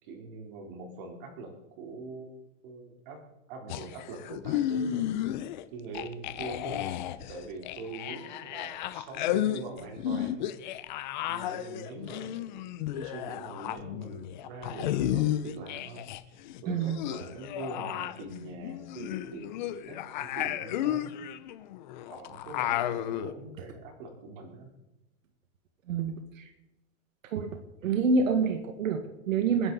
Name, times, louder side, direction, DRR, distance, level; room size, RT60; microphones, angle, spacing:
voice 1, 0.0-2.3 2.6-3.2 3.5-5.3 5.7-6.8 7.3-10.6 11.3-21.2 22.1-24.7, right 3 dB, 40° right, 3 dB, 3.7 m, -43 dB
sound 1, 3.7-5.6 5.9-16.2 16.5-23.3, left 12 dB, 35° left, 0.7 m, -33 dB
voice 2, 16.7-17.0 25.9-26.5 27.2-27.5 27.8-29.7, right 4 dB, 85° right, 6 dB, 1.9 m, -27 dB
29.0 x 11.0 x 4.1 m, 0.98 s
supercardioid pair, 170°, 39 cm